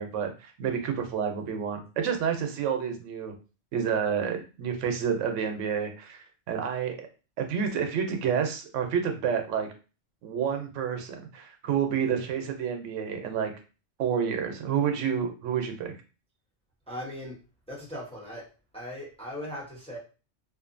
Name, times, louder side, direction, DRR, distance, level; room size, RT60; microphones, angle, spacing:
voice 1, 0.0-3.3 3.7-7.1 7.4-9.7 10.2-13.5 14.0-15.9, right 7 dB, 85° right, 5 dB, 0.9 m, -29 dB
voice 2, 16.9-17.4 17.7-18.5 18.7-20.0, equal, 5° left, -4 dB, 0.7 m, -38 dB
2.5 x 2.5 x 2.5 m, 0.33 s
omnidirectional pair, 1.2 m